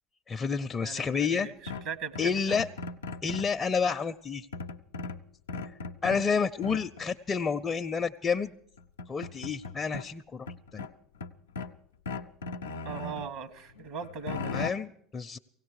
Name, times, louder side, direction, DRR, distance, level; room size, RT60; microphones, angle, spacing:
voice 1, 0.3-1.5 2.2-2.7 3.2-4.5 6.0-8.5 9.1-10.5 10.7-10.9 14.5-15.4, left 5 dB, 30° left, 6 dB, 0.5 m, -29 dB
voice 2, 0.8-2.6 12.8-14.6, right 6 dB, 65° right, 14 dB, 1.1 m, -39 dB
sound 1, 1.7-3.6 4.5-6.3 6.6-7.1 8.3-8.4 8.8-10.1 10.5-11.8 12.1-13.3 13.7-14.7, left 3 dB, 85° left, 0.5 m, -38 dB
17.0 x 17.0 x 4.8 m, 0.69 s
hypercardioid pair, 80°, 0 cm